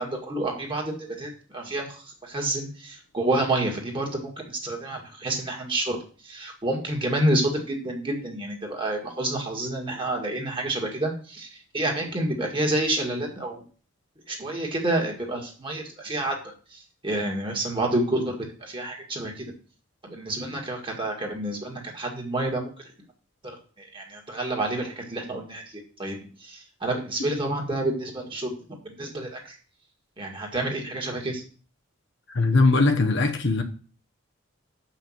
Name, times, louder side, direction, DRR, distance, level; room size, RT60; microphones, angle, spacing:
voice 1, 0.0-6.0 6.2-13.6 14.3-19.5 20.0-22.9 23.4-28.5 28.8-29.6 30.2-31.4, right 1 dB, 25° right, 1.9 m, -29 dB
voice 2, 32.3-33.6, left 3 dB, 60° left, 1.0 m, -20 dB
7.0 x 5.9 x 7.2 m
head